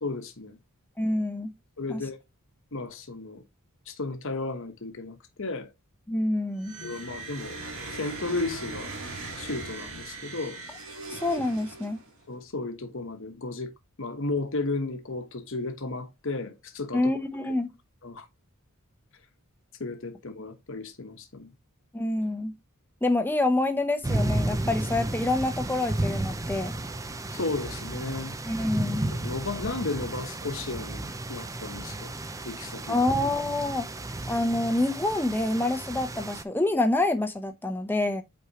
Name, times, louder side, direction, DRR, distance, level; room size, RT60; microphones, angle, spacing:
voice 1, 0.0-0.6 1.8-2.2 2.7-3.4 3.9-5.7 6.8-7.6 7.9-8.9 9.4-10.6 12.3-13.7 14.0-17.1 18.0-18.3 19.8-21.5 27.3-28.3 29.1-32.1 32.4-33.0, left 3 dB, 60° left, 1.1 m, -34 dB
voice 2, 1.0-1.5 1.9-2.0 6.1-6.7 11.1-12.0 16.9-17.7 21.9-22.5 23.0-26.7 28.5-29.1 32.9-33.9 34.3-38.2, left 2 dB, 10° left, 0.8 m, -27 dB
sound 1, 6.6-12.2, right 2 dB, 65° right, 1.9 m, -39 dB
sound 2, 24.0-36.4, right 1 dB, 15° right, 0.4 m, -33 dB
8.1 x 4.4 x 2.9 m
head